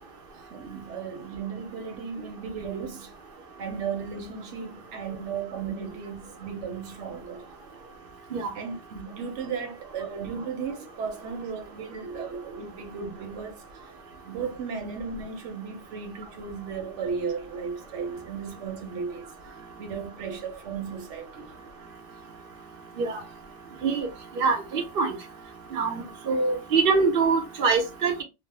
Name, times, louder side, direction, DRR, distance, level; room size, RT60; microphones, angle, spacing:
voice 1, 0.3-3.1 3.6-7.5 8.5-13.9 14.2-19.3 19.8-21.5 23.7-23.8 25.7-25.8, right 6 dB, 90° right, 1.0 m, -35 dB
voice 2, 24.3-25.1 25.7-28.2, right 4 dB, 55° right, 0.9 m, -24 dB
2.9 x 2.0 x 3.2 m
omnidirectional pair, 1.2 m